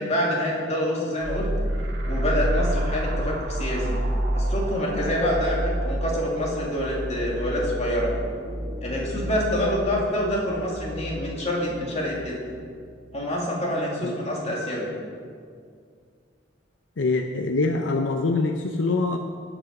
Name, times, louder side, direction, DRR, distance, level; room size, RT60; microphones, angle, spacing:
voice 1, 0.0-1.5 2.1-4.0 4.3-5.6 5.8-8.1 8.8-12.4 13.1-14.9, equal, 35° left, -3 dB, 2.5 m, -26 dB
sound 1, 1.2-12.6, right 1 dB, 85° right, 1.9 m, -29 dB
voice 2, 17.0-19.2, left 3 dB, 70° left, 4 dB, 0.6 m, -24 dB
17.0 x 6.2 x 5.3 m, 2.2 s
head